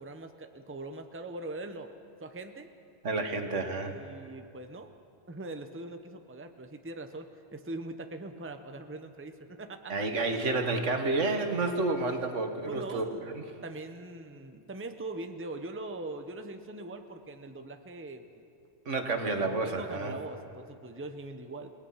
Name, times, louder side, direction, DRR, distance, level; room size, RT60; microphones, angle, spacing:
voice 1, 0.0-1.9 2.2-2.7 3.8-4.9 5.3-10.0 12.7-13.3 13.6-18.2 19.5-21.7, right 2 dB, 10° right, 7 dB, 0.8 m, -41 dB
voice 2, 3.0-4.0 9.9-13.0 18.9-20.2, right 3 dB, 75° right, 5 dB, 1.9 m, -30 dB
29.5 x 18.5 x 5.8 m, 2.5 s
omnidirectional pair, 1.2 m